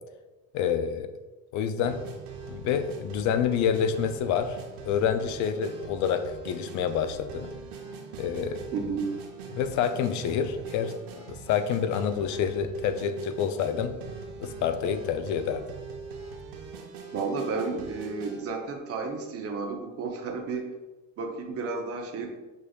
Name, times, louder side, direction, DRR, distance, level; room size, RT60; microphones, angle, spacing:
voice 1, 0.5-1.1 1.5-2.0 2.5-4.6 4.8-7.5 8.2-8.6 9.5-10.9 11.3-14.0 14.4-15.7, left 7 dB, 60° left, 9 dB, 0.4 m, -27 dB
sound 1, 1.8-18.4, right 4 dB, 90° right, 0.8 m, -42 dB
voice 2, 8.7-9.1 17.1-20.7 21.2-22.3, right 4 dB, 45° right, 3 dB, 0.8 m, -32 dB
6.3 x 3.2 x 2.3 m, 1.1 s
cardioid pair, 125°, 33 cm